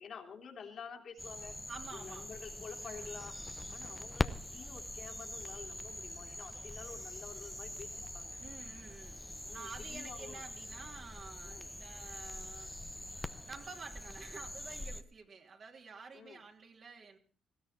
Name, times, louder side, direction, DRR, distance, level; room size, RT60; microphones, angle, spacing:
voice 1, 0.0-1.5 1.9-3.4 3.7-8.4 9.4-10.4 11.4-11.7 16.1-16.4, left 6 dB, 60° left, 3 dB, 3.0 m, -49 dB
sound 1, 1.2-15.0, left 1 dB, 5° left, 1.1 m, -46 dB
voice 2, 1.7-2.3 2.8-3.1 8.4-9.2 9.5-12.8 13.4-17.2, right 5 dB, 50° right, 2 dB, 3.2 m, -50 dB
Crackle, 3.0-14.2, left 3 dB, 25° left, 0.8 m, -46 dB
19.5 x 16.5 x 4.4 m, 0.42 s
cardioid pair, 90°, 0 cm